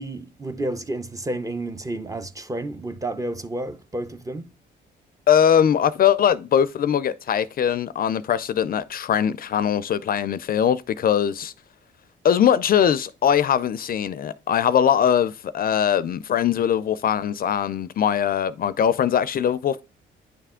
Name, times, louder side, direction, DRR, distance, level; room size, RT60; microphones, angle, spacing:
voice 1, 0.0-4.5, right 1 dB, 15° right, 0.6 m, -31 dB
voice 2, 5.3-11.5 12.2-19.8, left 9 dB, 50° left, 0.4 m, -21 dB
9.4 x 3.3 x 3.6 m
cardioid pair, 90°, 20 cm